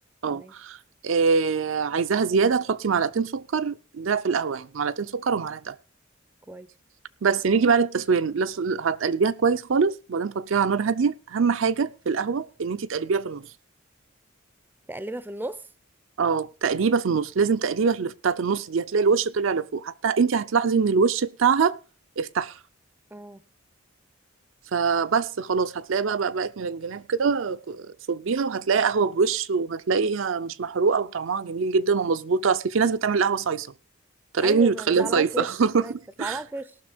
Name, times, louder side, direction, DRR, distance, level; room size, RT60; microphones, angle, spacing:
voice 1, 0.2-0.8 1.0-5.8 7.2-13.5 16.2-21.8 22.2-22.5 24.7-33.7 34.3-35.8 36.2-36.4, right 5 dB, 70° right, 0.5 m, -24 dB
voice 2, 14.9-15.7 23.1-23.4 34.4-35.6 35.8-36.8, right 2 dB, 10° right, 0.5 m, -34 dB
18.0 x 6.1 x 5.0 m
head